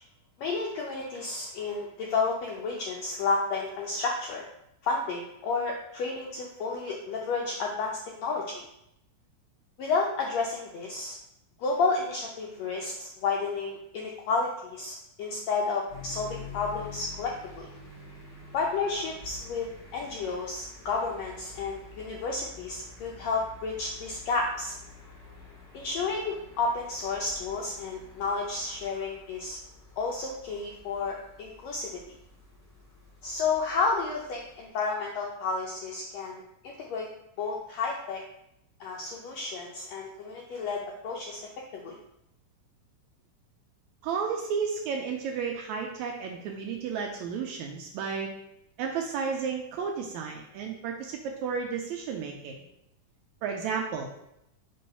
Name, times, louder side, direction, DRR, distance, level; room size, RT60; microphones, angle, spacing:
voice 1, 0.4-4.5 4.8-8.6 9.8-11.1 11.6-17.7 18.5-24.8 25.7-29.6 30.0-31.9 33.2-37.1 37.4-38.2 38.8-41.4 41.7-42.0, left 4 dB, 90° left, -1 dB, 1.5 m, -31 dB
sound 1, 15.9-34.7, left 4 dB, 20° right, 1.1 m, -49 dB
voice 2, 44.0-48.3 48.8-52.5 53.4-54.1, right 6 dB, 90° right, 1 dB, 1.6 m, -32 dB
5.6 x 3.1 x 5.4 m, 0.80 s
omnidirectional pair, 3.9 m